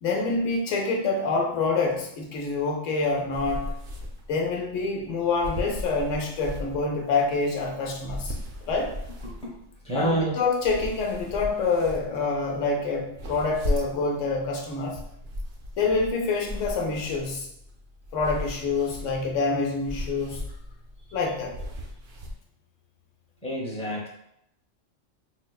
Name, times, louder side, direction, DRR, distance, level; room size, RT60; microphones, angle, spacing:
voice 1, 0.0-3.7 4.3-8.3 8.6-9.0 9.9-15.0 15.8-17.5 18.1-20.4 21.1-21.5, left 3 dB, 80° left, 1 dB, 1.0 m, -26 dB
sound 1, 3.3-22.3, left 1 dB, 55° right, 0.6 m, -37 dB
voice 2, 9.2-9.6 9.8-10.3 23.4-24.1, right 1 dB, 10° left, -4 dB, 0.5 m, -28 dB
4.5 x 2.1 x 2.3 m, 0.77 s
omnidirectional pair, 1.3 m